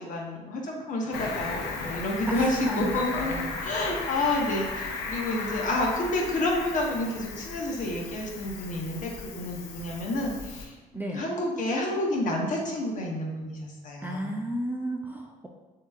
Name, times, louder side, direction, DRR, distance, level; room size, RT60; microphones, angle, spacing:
voice 1, 0.0-14.4, left 1 dB, 50° left, -1 dB, 1.1 m, -30 dB
Cricket, 1.1-10.7, left 4 dB, 85° left, 0.7 m, -36 dB
voice 2, 2.3-3.6 10.9-11.2 14.0-15.5, equal, 10° right, 1 dB, 0.4 m, -32 dB
7.0 x 2.9 x 2.4 m, 1.2 s
cardioid pair, 110°, 17 cm